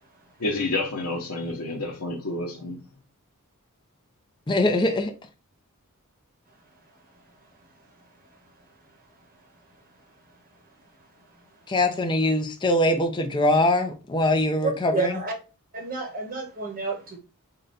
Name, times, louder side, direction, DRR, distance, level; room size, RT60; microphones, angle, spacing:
voice 1, 0.4-2.8, left 2 dB, 85° left, 0.8 m, -29 dB
voice 2, 4.5-5.1 11.7-15.2, left 1 dB, 20° left, 0.5 m, -22 dB
voice 3, 14.6-15.3 15.7-17.2, right 4 dB, 40° right, 1.0 m, -30 dB
3.8 x 2.2 x 3.9 m
head